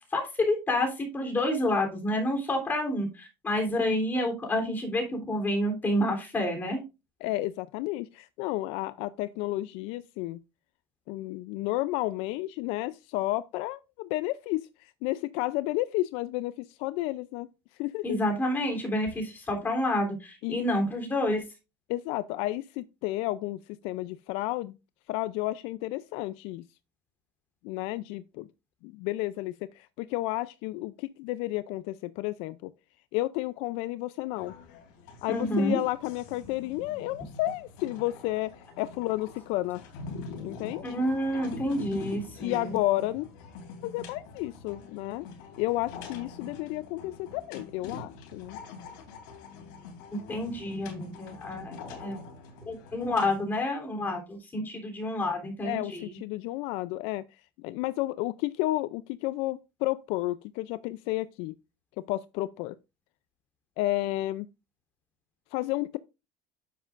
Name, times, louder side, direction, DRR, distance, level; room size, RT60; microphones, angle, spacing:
voice 1, 0.1-6.8 18.0-21.4 35.3-35.8 40.8-42.8 50.3-52.2 52.6-56.2, left 1 dB, 20° left, 3.2 m, -29 dB
voice 2, 7.2-10.4 11.1-17.5 17.8-18.2 20.4-20.6 21.9-24.7 25.1-26.6 27.6-28.5 28.8-32.7 33.1-34.5 35.2-39.8 40.4-40.8 42.4-43.3 43.8-45.3 45.6-48.6 55.6-57.2 57.6-61.5 62.0-62.8 63.8-64.5 65.5-66.0, left 17 dB, 65° left, 0.4 m, -31 dB
sound 1, 34.4-53.4, left 4 dB, 85° left, 3.1 m, -45 dB
9.9 x 7.3 x 2.5 m
cardioid pair, 140°, 11 cm